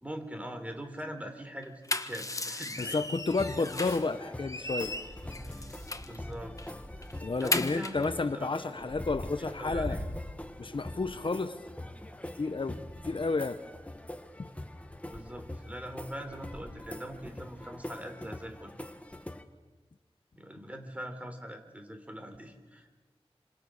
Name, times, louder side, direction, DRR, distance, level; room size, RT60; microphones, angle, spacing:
voice 1, 0.0-3.1 6.1-6.5 7.4-8.8 9.4-10.1 15.0-18.7 20.4-22.9, equal, 15° right, 6 dB, 4.1 m, -42 dB
sound 1, 1.6-4.1 4.5-6.2 6.6-6.7 7.0-8.1, left 2 dB, 30° left, 1.4 m, -35 dB
voice 2, 2.8-4.9 7.2-10.0 10.6-11.6 12.3-13.6, left 3 dB, 55° left, 11 dB, 1.0 m, -31 dB
sound 2, 3.3-19.4, left 1 dB, 15° left, 1.7 m, -42 dB
28.0 x 27.0 x 6.6 m, 1.3 s
wide cardioid pair, 80°, 10 cm